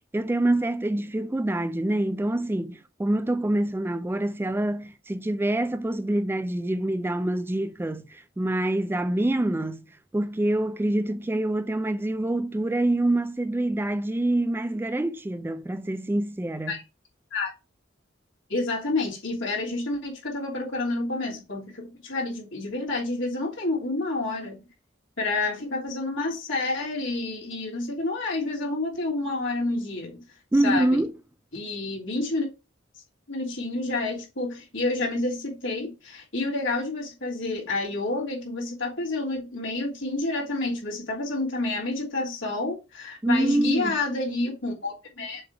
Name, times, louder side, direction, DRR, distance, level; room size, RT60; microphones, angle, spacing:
voice 1, 0.1-9.8 10.1-16.8 30.5-31.1 43.2-43.9, right 1 dB, 10° right, 0.3 m, -26 dB
voice 2, 18.5-24.6 25.2-30.2 30.6-31.0 31.5-32.5 33.3-45.4, left 2 dB, 80° left, 3.2 m, -29 dB
7.0 x 3.3 x 4.8 m
head